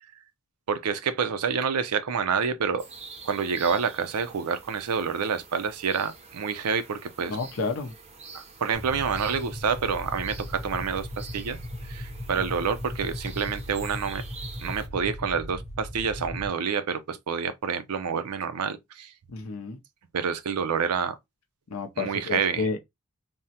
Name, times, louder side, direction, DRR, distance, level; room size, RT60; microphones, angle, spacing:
voice 1, 0.7-2.9 3.2-7.4 8.3-11.6 11.9-14.2 14.6-19.1 20.1-21.2 22.0-22.7, right 6 dB, 85° right, 0.5 m, -28 dB
sound 1, 2.8-14.9, right 4 dB, 30° right, 0.5 m, -47 dB
voice 2, 7.3-7.9 12.4-12.5 19.3-19.8 21.7-22.8, left 4 dB, 70° left, 0.5 m, -31 dB
sound 2, 8.7-16.5, left 1 dB, 30° left, 0.7 m, -37 dB
3.5 x 2.0 x 2.7 m
head